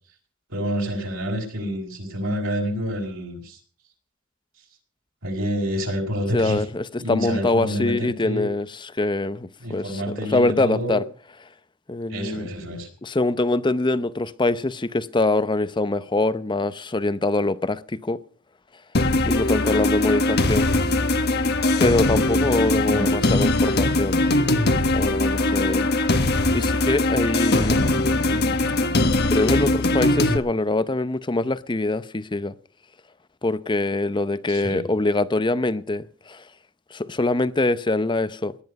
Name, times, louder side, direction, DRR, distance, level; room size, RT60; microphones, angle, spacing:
voice 1, 0.5-3.6 5.2-6.6 7.0-8.5 9.6-11.0 12.1-12.9 22.9-23.1 34.5-34.8, equal, 60° right, 5.0 m, -28 dB
voice 2, 6.3-10.0 10.3-11.0 11.9-12.5 13.0-18.2 19.3-20.7 21.8-24.2 24.9-25.9 26.5-28.0 29.3-32.6 33.4-36.4 36.9-38.6, left 2 dB, 20° left, 0.6 m, -24 dB
sound 1, 18.9-30.4, left 2 dB, 50° left, 1.4 m, -21 dB
18.5 x 12.0 x 5.3 m
head